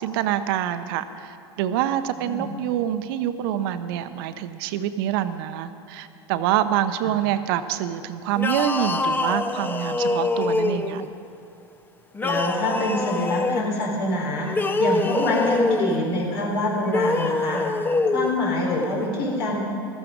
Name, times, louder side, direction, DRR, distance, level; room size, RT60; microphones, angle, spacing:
voice 1, 0.0-11.0, right 11 dB, 60° right, 11 dB, 0.8 m, -26 dB
sound 1, 8.3-11.1 12.1-13.7 14.4-16.0 16.8-18.3, left 3 dB, 15° left, 0.7 m, -24 dB
voice 2, 12.2-17.6 18.1-19.6, left 1 dB, 70° left, -2 dB, 4.1 m, -25 dB
14.0 x 13.5 x 5.2 m, 2.7 s
hypercardioid pair, 85°, 13 cm